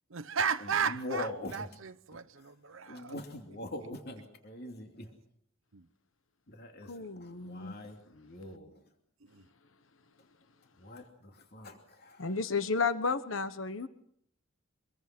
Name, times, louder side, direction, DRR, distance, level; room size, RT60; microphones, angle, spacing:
voice 1, 0.1-3.2 5.7-5.8 9.3-9.4, right 6 dB, 80° right, 0.8 m, -34 dB
voice 2, 0.9-1.7 2.9-5.1 6.5-6.9 7.2-8.7 10.8-11.0 11.5-12.2, left 1 dB, 55° left, 2.8 m, -42 dB
voice 3, 6.9-7.8 12.2-13.9, left 4 dB, 75° left, 1.2 m, -32 dB
25.5 x 22.0 x 6.1 m
head